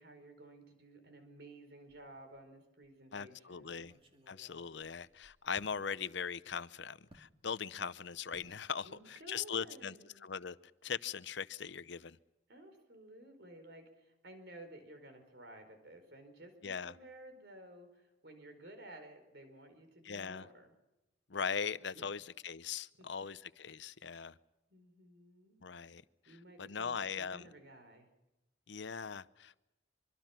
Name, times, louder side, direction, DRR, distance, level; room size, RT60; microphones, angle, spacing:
voice 1, 0.0-3.9 8.8-10.3 12.5-20.7 21.9-22.1 24.7-25.6 26.2-28.1, right 1 dB, 60° right, 4.9 m, -54 dB
sound 1, 1.9-2.5 2.8-2.9 3.7-5.8 7.1-7.3 8.3-8.6 8.9-9.2 9.5-9.7, equal, 30° right, 2.3 m, -62 dB
voice 2, 3.1-3.9 4.3-10.0 10.2-10.6 10.8-12.2 16.6-16.9 20.0-20.5 21.3-24.4 25.6-26.0 26.6-27.5 28.7-29.6, left 6 dB, 70° left, 0.7 m, -40 dB
24.5 x 24.0 x 6.0 m
head